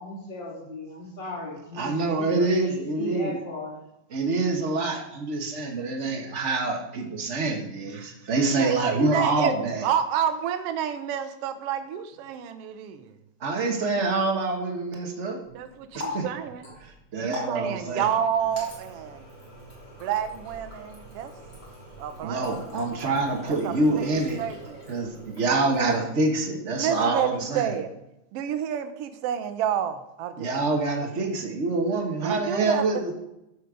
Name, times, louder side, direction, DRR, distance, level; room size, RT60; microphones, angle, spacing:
voice 1, 0.0-3.8, left 1 dB, 20° left, -4 dB, 3.1 m, -36 dB
voice 2, 1.8-3.3 4.1-9.9 13.4-15.4 15.9-16.2 16.8-18.1 22.2-24.4 24.9-27.7 30.4-33.1, right 3 dB, 50° right, 2 dB, 0.8 m, -26 dB
voice 3, 8.6-13.2 15.5-16.7 17.2-19.3 20.0-21.4 22.0-22.5 23.5-24.8 26.7-27.9 28.3-30.5 32.2-32.9, right 9 dB, 70° right, 9 dB, 1.6 m, -29 dB
Water tap faucet, 15.4-26.2, left 2 dB, 35° left, 3.9 m, -42 dB
13.5 x 6.6 x 5.0 m, 0.88 s
omnidirectional pair, 3.4 m